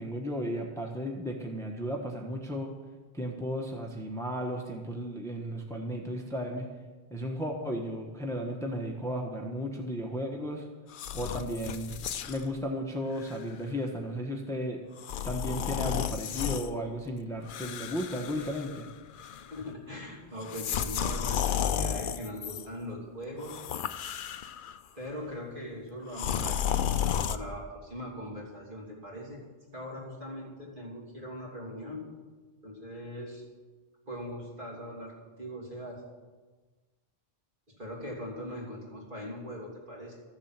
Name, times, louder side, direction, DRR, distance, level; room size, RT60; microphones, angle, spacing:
voice 1, 0.0-2.7 3.1-6.7 7.1-10.7 11.1-11.9 12.3-14.8 15.2-18.9, equal, 5° left, 2 dB, 1.0 m, -34 dB
sound 1, 10.9-12.5 13.2-13.4 15.0-16.7 17.5-18.9 19.2-19.6 20.4-22.6 23.4-24.8 26.1-27.4, left 9 dB, 60° left, 0.6 m, -32 dB
voice 2, 19.2-23.6 24.9-29.4 29.7-32.1 32.6-33.5 34.0-36.1 37.7-40.2, equal, 50° right, -3 dB, 3.1 m, -41 dB
13.5 x 7.3 x 7.4 m, 1.3 s
omnidirectional pair, 1.1 m